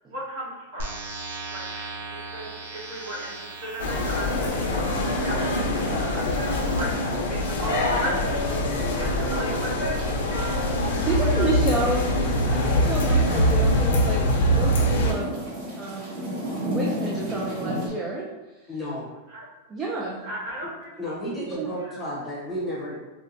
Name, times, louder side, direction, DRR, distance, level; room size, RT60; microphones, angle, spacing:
voice 1, 0.1-1.1 1.5-10.7 11.0-11.7 19.3-19.5 20.2-20.9 21.8-22.0, equal, 55° right, -6 dB, 1.3 m, -36 dB
sound 1, 0.8-6.8, right 2 dB, 90° right, 0.7 m, -39 dB
sound 2, 3.8-15.1, left 1 dB, 85° left, 0.7 m, -23 dB
sound 3, 6.2-17.9, equal, 40° right, 0.9 m, -36 dB
voice 2, 11.0-12.1 12.5-15.4 15.8-18.3 19.7-20.2 21.6-21.7, right 2 dB, 15° right, -3 dB, 0.3 m, -29 dB
voice 3, 18.7-19.1 21.0-23.0, equal, 5° left, -6 dB, 0.8 m, -32 dB
4.4 x 2.1 x 2.6 m, 1.2 s
supercardioid pair, 165°, 0 cm